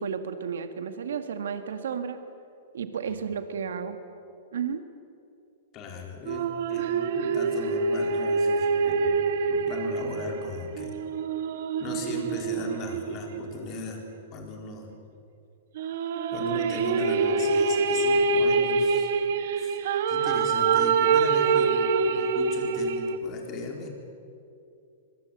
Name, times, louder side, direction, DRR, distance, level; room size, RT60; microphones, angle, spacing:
voice 1, 0.0-2.2 2.7-4.0 4.5-4.8, right 7 dB, 90° right, 8 dB, 1.9 m, -32 dB
voice 2, 5.7-11.0 11.8-14.1 14.3-14.9 16.3-19.1 19.6-19.8 20.1-23.9, left 3 dB, 30° left, 2 dB, 4.4 m, -38 dB
sound 1, 6.3-13.9 15.8-23.2, right 4 dB, 60° right, 1.8 m, -25 dB
23.5 x 22.0 x 8.1 m, 2.6 s
hypercardioid pair, 155°, 0 cm